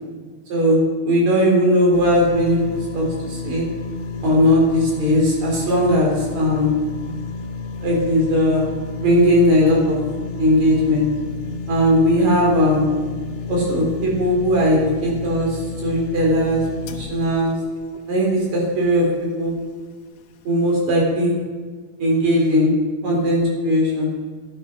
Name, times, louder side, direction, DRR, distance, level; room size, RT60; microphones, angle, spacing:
voice 1, 0.5-3.7 4.2-6.7 7.8-8.7 9.0-10.0 10.4-11.1 11.7-12.9 13.5-16.6 16.9-17.5 18.1-19.6 20.4-21.3 22.0-22.7 23.0-24.1, equal, 45° right, -2 dB, 4.9 m, -18 dB
sound 1, 1.9-19.1 19.6-19.7, left 4 dB, 80° left, 3.0 m, -32 dB
14.0 x 11.0 x 6.3 m, 1.5 s
omnidirectional pair, 4.6 m